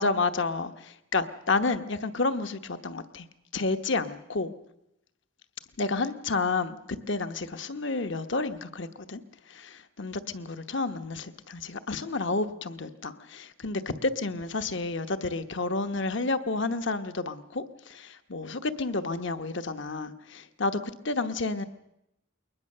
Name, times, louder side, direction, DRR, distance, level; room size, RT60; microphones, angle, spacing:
voice 1, 0.0-3.3 3.5-4.5 5.8-9.2 9.5-21.6, left 3 dB, 65° left, 9 dB, 1.1 m, -30 dB
22.0 x 20.0 x 6.7 m, 0.84 s
head